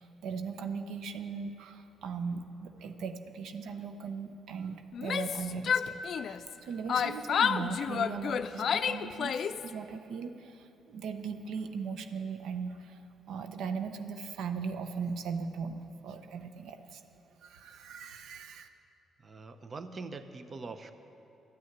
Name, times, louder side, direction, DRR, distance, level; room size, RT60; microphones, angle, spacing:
voice 1, 0.0-6.0 6.2-17.0 17.4-18.7, right 5 dB, 80° right, 8 dB, 0.6 m, -38 dB
Yell, 4.9-6.6 6.9-9.7, left 7 dB, 60° left, 0.4 m, -30 dB
voice 2, 19.2-20.9, right 3 dB, 40° right, 10 dB, 0.7 m, -43 dB
13.0 x 6.4 x 9.5 m, 2.8 s
cardioid pair, 90°, 0 cm